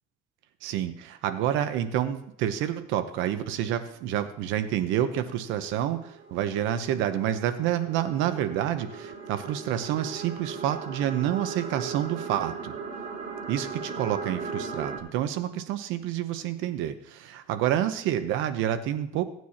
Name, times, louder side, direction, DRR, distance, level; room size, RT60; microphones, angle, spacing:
voice 1, 0.6-12.7 13.5-19.2, right 11 dB, 75° right, 11 dB, 0.8 m, -28 dB
sound 1, 3.7-4.0 4.9-15.0, right 5 dB, 35° right, 2.2 m, -38 dB
16.5 x 9.2 x 2.8 m, 0.72 s
cardioid pair, 135°, 20 cm